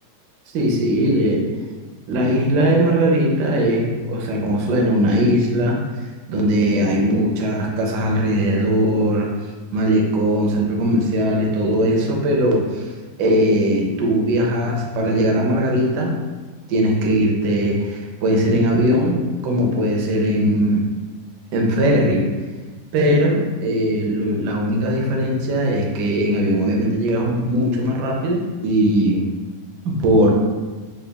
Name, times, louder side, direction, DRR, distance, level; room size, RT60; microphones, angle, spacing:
voice 1, 0.5-1.4 2.1-5.8 6.3-9.3 9.7-12.9 13.2-16.2 16.7-20.9 21.5-22.3 22.9-29.2 29.8-30.3, equal, 80° right, 0 dB, 1.2 m, -19 dB
3.9 x 2.2 x 3.3 m, 1.3 s
omnidirectional pair, 1.8 m